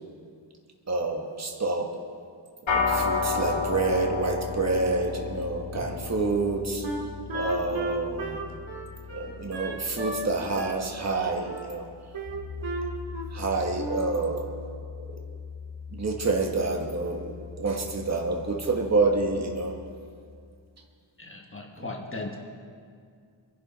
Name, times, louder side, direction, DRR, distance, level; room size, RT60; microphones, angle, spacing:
voice 1, 0.9-1.9 2.7-6.9 7.3-8.4 9.1-11.9 13.3-14.5 15.9-19.7, right 3 dB, 30° right, 2 dB, 1.5 m, -28 dB
sound 1, 2.7-12.2, left 4 dB, 70° left, 2.5 m, -33 dB
Wind instrument woodwind instrument, 6.8-10.3 10.6-11.7 12.1-13.4 13.7-14.2, right 2 dB, 65° right, 2.3 m, -35 dB
Piano, 12.2-19.9, left 6 dB, 45° left, 3.1 m, -41 dB
voice 2, 21.2-22.4, left 2 dB, 25° left, 0 dB, 1.3 m, -38 dB
26.0 x 11.0 x 4.2 m, 2.2 s
wide cardioid pair, 155°, 50 cm